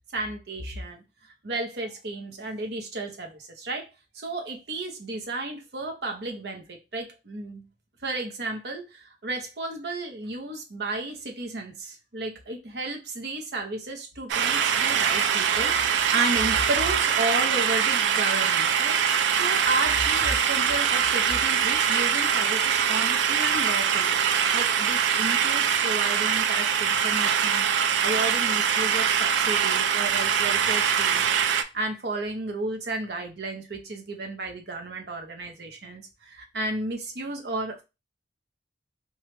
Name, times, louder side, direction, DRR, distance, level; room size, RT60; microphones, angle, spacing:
voice 1, 0.1-1.0 1.4-3.9 4.1-7.6 8.0-27.7 28.0-37.8, right 2 dB, 60° right, 3 dB, 0.8 m, -33 dB
sound 1, 14.3-31.6, right 8 dB, 80° right, 0.3 m, -23 dB
3.2 x 2.3 x 3.1 m, 0.26 s
head